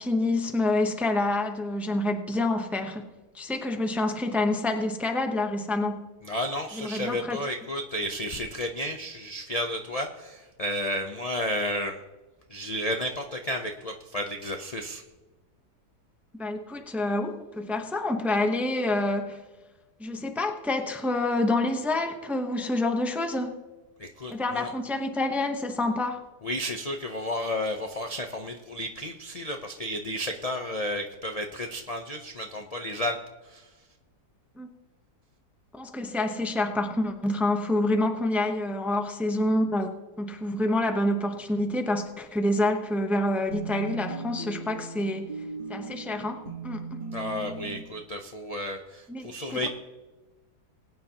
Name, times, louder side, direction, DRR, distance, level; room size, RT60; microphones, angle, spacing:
voice 1, 0.0-6.1 6.7-7.5 16.4-19.4 20.0-23.6 24.3-26.2 34.6-34.7 35.7-39.9 40.2-45.3 45.7-47.0 49.1-49.7, left 2 dB, ahead, 5 dB, 0.4 m, -27 dB
voice 2, 6.2-11.9 12.5-15.0 24.0-24.7 26.4-33.2 33.5-33.6 47.1-49.7, equal, 60° left, 4 dB, 0.3 m, -32 dB
sound 1, 43.5-47.8, right 3 dB, 30° right, 1.4 m, -38 dB
21.0 x 9.4 x 2.9 m, 1.2 s
omnidirectional pair, 1.8 m